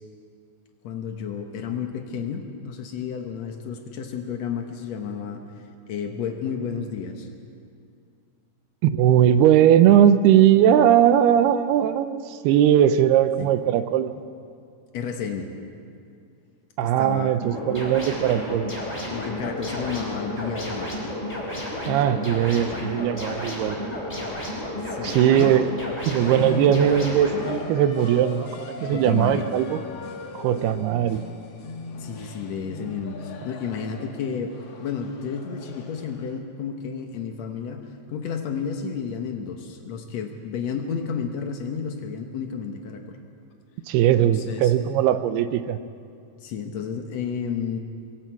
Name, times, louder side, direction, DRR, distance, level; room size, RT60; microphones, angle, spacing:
voice 1, 0.8-5.4 5.9-7.3 13.4-13.5 14.9-15.5 17.0-17.4 19.1-21.0 24.9-25.6 28.8-29.5 32.0-43.2 44.2-44.7 46.4-47.8, left 6 dB, 80° left, 4 dB, 1.5 m, -31 dB
voice 2, 8.8-14.2 16.8-18.7 21.9-23.8 25.0-25.7 26.1-29.8 30.3-31.2 43.9-45.8, right 10 dB, 80° right, 11 dB, 2.6 m, -19 dB
sound 1, 17.4-27.5, left 1 dB, 10° left, 4.6 m, -32 dB
sound 2, 26.2-36.4, left 3 dB, 55° left, 1.8 m, -37 dB
24.0 x 23.0 x 4.6 m, 2.4 s
omnidirectional pair, 4.8 m